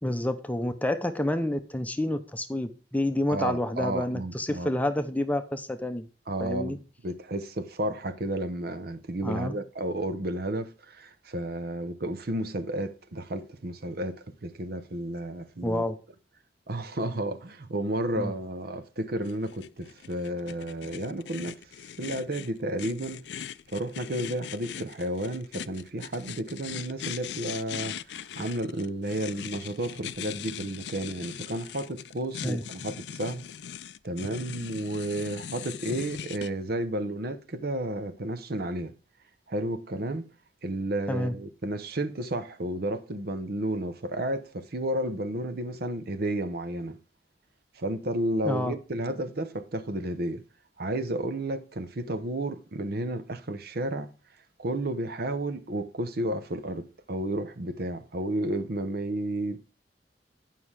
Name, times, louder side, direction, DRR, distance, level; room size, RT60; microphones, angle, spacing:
voice 1, 0.0-6.1 6.4-6.8 9.2-9.5 15.6-16.0 18.2-18.3 32.4-32.6 41.1-41.3 48.4-48.7, left 1 dB, 10° left, 0.7 m, -29 dB
voice 2, 3.3-4.7 6.3-15.8 16.7-21.6 22.0-23.2 23.7-33.4 34.0-38.9 39.5-40.3 40.6-47.0 47.8-50.4 50.8-54.1 54.6-59.6, right 1 dB, 60° right, 0.8 m, -32 dB
sound 1, 19.3-36.5, left 9 dB, 65° left, 0.4 m, -40 dB
9.3 x 5.6 x 4.8 m
head